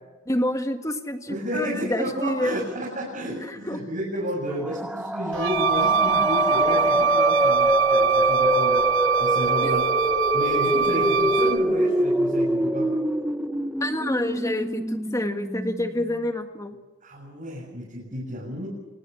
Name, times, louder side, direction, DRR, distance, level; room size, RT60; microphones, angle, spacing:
voice 1, 0.3-2.6 3.5-3.8 9.6-9.7 13.8-16.8, left 1 dB, 15° left, 6 dB, 1.8 m, -28 dB
voice 2, 1.3-8.9 9.2-9.9 10.3-12.9 17.0-18.7, equal, 40° right, -4 dB, 7.8 m, -31 dB
sound 1, 4.5-16.2, equal, 5° right, 1.0 m, -25 dB
Wind instrument woodwind instrument, 5.3-11.7, right 6 dB, 65° right, 1.0 m, -23 dB
27.5 x 21.0 x 7.2 m, 1.2 s
head